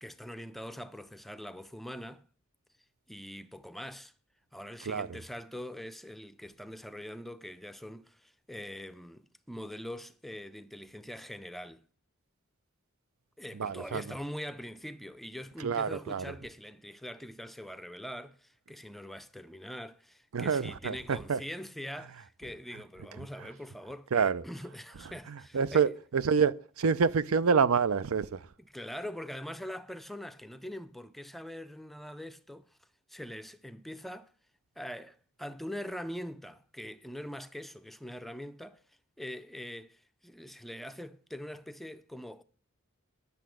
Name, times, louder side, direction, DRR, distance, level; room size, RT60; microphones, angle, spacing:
voice 1, 0.0-2.3 3.1-4.1 4.5-11.8 13.4-25.9 28.6-34.3 34.8-38.8 39.2-42.4, equal, ahead, 0.4 m, -43 dB
voice 2, 4.9-5.2 13.6-14.0 15.6-16.2 20.3-21.4 24.1-24.4 25.3-28.4, right 6 dB, 75° right, 0.5 m, -27 dB
10.5 x 6.9 x 7.6 m
head